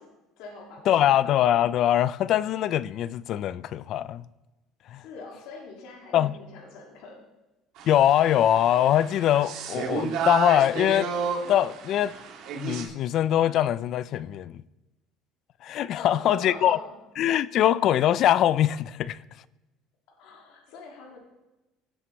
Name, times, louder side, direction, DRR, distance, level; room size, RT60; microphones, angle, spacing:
voice 1, 0.0-0.9 5.0-7.2 15.9-16.9 20.2-21.2, left 3 dB, 75° left, 2.0 m, -44 dB
voice 2, 0.9-4.2 4.9-5.0 6.1-6.4 7.9-11.1 11.5-12.1 12.6-14.6 15.6-16.8 17.2-19.2, left 11 dB, 60° left, 0.3 m, -23 dB
sound 1, 7.8-12.9, right 5 dB, 70° right, 1.9 m, -32 dB
16.5 x 7.7 x 3.1 m
supercardioid pair, 100°, 0 cm